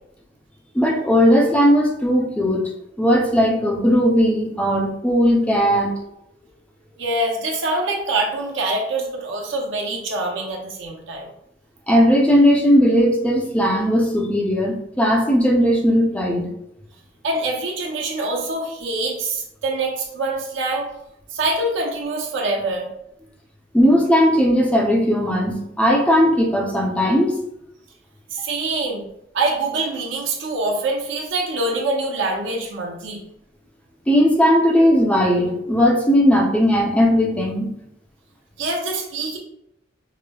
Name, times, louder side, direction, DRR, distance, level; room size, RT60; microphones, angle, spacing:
voice 1, 0.7-2.7 3.0-5.9 11.9-16.5 23.7-27.4 34.1-37.7, equal, 5° left, -1 dB, 0.5 m, -17 dB
voice 2, 7.0-11.3 17.2-20.9 21.3-22.9 28.3-29.0 29.3-33.2 38.6-39.4, right 2 dB, 80° right, 0 dB, 0.6 m, -25 dB
4.8 x 2.0 x 2.2 m, 0.79 s
head